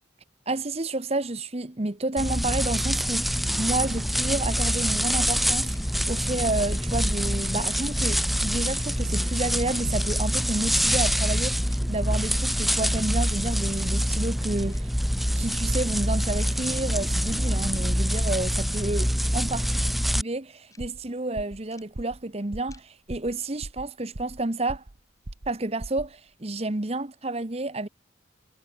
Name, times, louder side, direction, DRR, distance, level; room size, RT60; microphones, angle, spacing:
voice 1, 0.5-14.9 15.3-19.7 20.2-24.8 25.5-27.9, right 2 dB, 35° right, 1.1 m, -30 dB
sound 1, 2.2-20.2, equal, ahead, 0.4 m, -25 dB
sound 2, 5.7-5.8 6.7-6.8 7.7-7.8 8.7-8.8 9.7-9.8 10.7-10.8 11.7-11.8 12.7-12.8 13.7-13.8 14.7-14.8 15.7-15.8 16.7-16.8 17.7-17.8 18.7-18.8 19.7-19.8 20.7-20.8 21.7-21.8 22.7-22.8, left 4 dB, 20° left, 3.9 m, -54 dB
sound 3, 20.8-21.1 21.4-21.6 22.0-22.2 22.5-22.8 23.1-23.4 23.6-24.4 24.7-25.0 25.3-25.6 25.8-26.1, right 1 dB, 75° right, 1.6 m, -39 dB
head